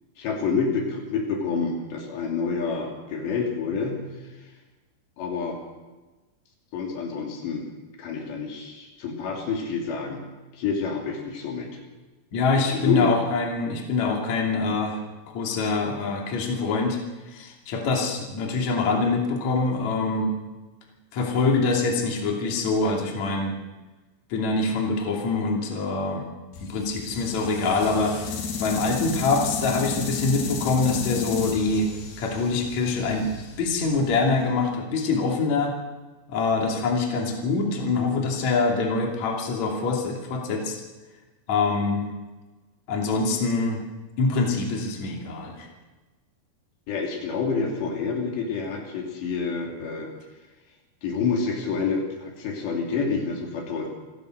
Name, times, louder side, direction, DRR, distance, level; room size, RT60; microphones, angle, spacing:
voice 1, 0.2-4.0 5.2-5.6 6.7-7.7 8.0-10.2 10.5-11.8 12.7-13.1 46.9-50.1 51.0-53.9, left 5 dB, 80° left, 1 dB, 5.1 m, -28 dB
voice 2, 12.3-15.0 15.3-17.0 17.3-20.3 21.1-23.5 24.3-26.3 26.6-28.2 28.6-31.9 32.2-33.3 33.6-35.7 36.3-40.7 41.5-42.0 42.9-43.8 44.2-45.7, left 3 dB, 45° left, 0 dB, 3.7 m, -24 dB
sound 1, 26.5-34.6, left 5 dB, 60° left, 4.0 m, -33 dB
27.5 x 14.5 x 6.6 m, 1.2 s
omnidirectional pair, 4.9 m